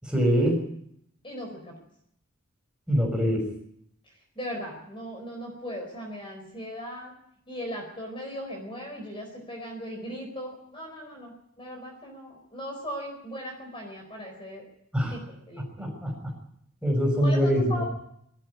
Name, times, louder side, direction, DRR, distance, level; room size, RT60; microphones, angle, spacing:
voice 1, 0.0-0.6 2.9-3.5 14.9-15.1 15.8-16.3 16.8-17.9, equal, 5° right, 0 dB, 5.8 m, -24 dB
voice 2, 1.2-1.7 4.3-7.1 7.5-14.6 15.1-15.9 17.2-17.8, equal, 25° left, 1 dB, 4.3 m, -38 dB
22.0 x 13.0 x 9.8 m, 0.74 s
head